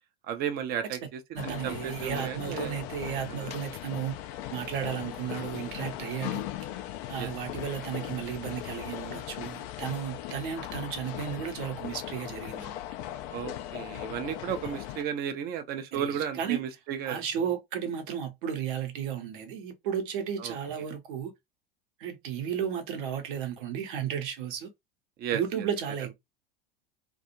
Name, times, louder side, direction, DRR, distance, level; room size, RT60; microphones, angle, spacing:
voice 1, 0.3-2.8 3.3-3.5 7.2-7.3 13.3-17.2 20.4-20.6 25.2-25.4, right 8 dB, 35° right, 0.6 m, -34 dB
voice 2, 1.3-4.2 4.5-6.5 7.1-12.7 15.9-16.6 17.1-21.3 22.0-24.7 25.3-26.1, right 8 dB, 60° right, 0.9 m, -34 dB
sound 1, 1.4-15.0, left 13 dB, 45° left, 0.4 m, -39 dB
2.4 x 2.4 x 2.8 m
figure-of-eight pair, 85°, 29 cm